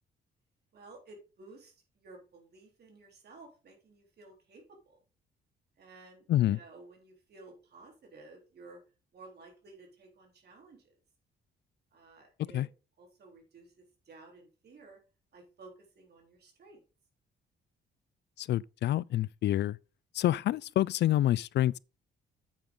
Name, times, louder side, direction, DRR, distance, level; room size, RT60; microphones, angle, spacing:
voice 1, 0.7-5.0 5.8-8.8 9.1-10.8 11.9-12.6 13.0-13.7 14.1-15.0 15.3-16.8, right 3 dB, 55° right, 3.7 m, -54 dB
voice 2, 18.4-19.8 20.2-21.8, left 13 dB, 60° left, 0.4 m, -27 dB
8.7 x 7.0 x 3.8 m
cardioid pair, 90°, 20 cm